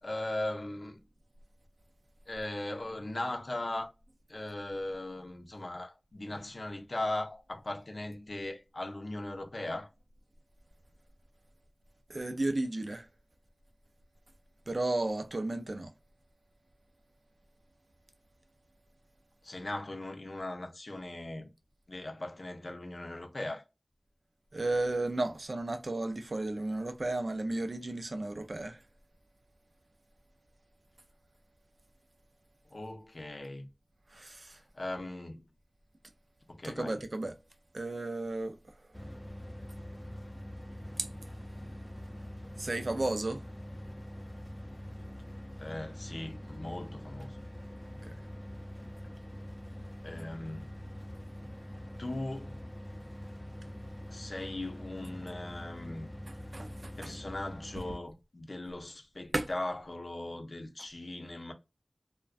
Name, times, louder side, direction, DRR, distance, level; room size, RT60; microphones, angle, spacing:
voice 1, 0.0-1.0 2.3-3.9 4.3-9.9 19.4-21.5 21.9-23.6 32.7-33.7 34.7-35.5 36.5-37.0 45.6-47.4 50.0-50.7 52.0-52.6 54.1-56.1 57.0-61.5, left 1 dB, 75° left, 0.5 m, -39 dB
voice 2, 12.1-13.1 14.7-15.9 24.5-28.8 34.1-34.6 36.6-37.4 37.7-39.0 41.0-41.1 42.6-43.4 48.0-48.2 56.5-57.2 57.7-57.9 59.3-59.5, right 2 dB, 75° right, 0.4 m, -34 dB
sound 1, 38.9-58.0, equal, 10° left, 0.4 m, -44 dB
2.4 x 2.1 x 2.3 m
wide cardioid pair, 45°, 0 cm